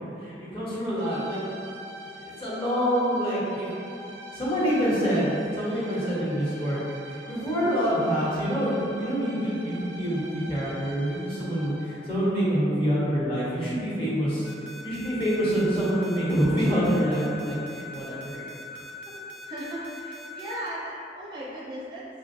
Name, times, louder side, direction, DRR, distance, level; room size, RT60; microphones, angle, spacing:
voice 1, 0.2-1.4 2.1-3.7 4.3-6.8 7.1-14.5 14.8-18.4, equal, 30° left, -10 dB, 1.2 m, -26 dB
sound 1, 1.0-12.1, right 1 dB, 85° right, 0.5 m, -44 dB
sound 2, 14.4-20.7, right 1 dB, 75° left, 0.5 m, -42 dB
voice 2, 19.5-22.1, right 1 dB, 25° right, -7 dB, 0.5 m, -36 dB
6.0 x 2.4 x 2.6 m, 2.7 s
head